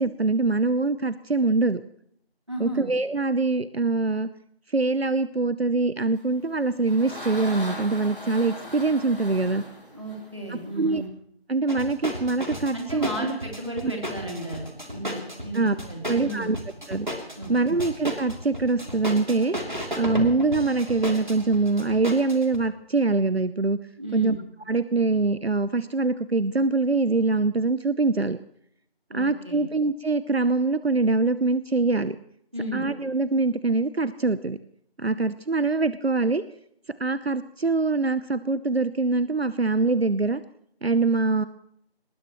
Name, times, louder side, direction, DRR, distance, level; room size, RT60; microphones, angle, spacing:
voice 1, 0.0-1.8 2.6-4.3 4.7-9.6 10.5-11.0 11.5-13.1 13.8-13.9 15.5-15.8 16.1-16.6 16.9-17.1 17.5-19.6 20.0-23.8 24.1-24.4 24.7-28.4 29.1-32.2 32.7-34.6 35.0-36.4 37.0-40.4 40.8-41.5, right 3 dB, 75° right, 15 dB, 0.8 m, -24 dB
voice 2, 2.5-2.9 9.9-11.1 12.7-16.5 17.4-17.8 24.0-24.4 29.1-29.6 32.5-32.8, right 1 dB, 30° right, 0 dB, 3.5 m, -34 dB
sound 1, 6.4-11.1, left 1 dB, 55° left, 6.5 m, -39 dB
sound 2, 11.7-22.6, equal, 50° right, 3.2 m, -34 dB
23.0 x 20.0 x 3.1 m, 0.71 s
figure-of-eight pair, 180°, 31 cm